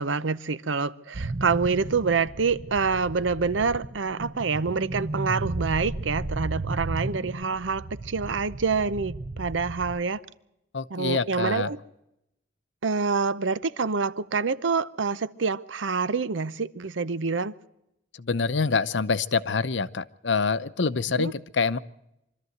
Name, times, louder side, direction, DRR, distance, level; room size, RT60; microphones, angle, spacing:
voice 1, 0.0-10.2 10.9-11.8 12.8-17.5 21.2-21.3, right 4 dB, 85° right, 0.7 m, -27 dB
sound 1, 1.1-10.0, right 2 dB, 50° right, 0.8 m, -34 dB
voice 2, 10.7-11.7 18.2-21.8, left 4 dB, 70° left, 0.8 m, -26 dB
24.5 x 13.5 x 7.9 m
head